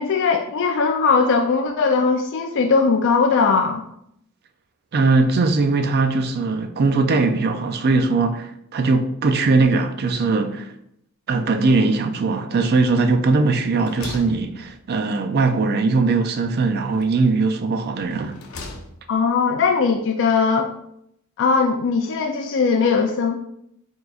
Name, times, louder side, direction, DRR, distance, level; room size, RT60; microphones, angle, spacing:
voice 1, 0.0-3.8 19.1-20.7 21.4-23.4, left 5 dB, 60° left, 0.4 m, -19 dB
voice 2, 4.9-10.7 11.3-18.4, right 3 dB, 50° right, 0.4 m, -20 dB
sound 1, 12.8-13.3 13.6-15.2 16.4-17.3 18.0-19.2, left 3 dB, 90° left, 0.7 m, -40 dB
4.8 x 3.8 x 2.4 m
head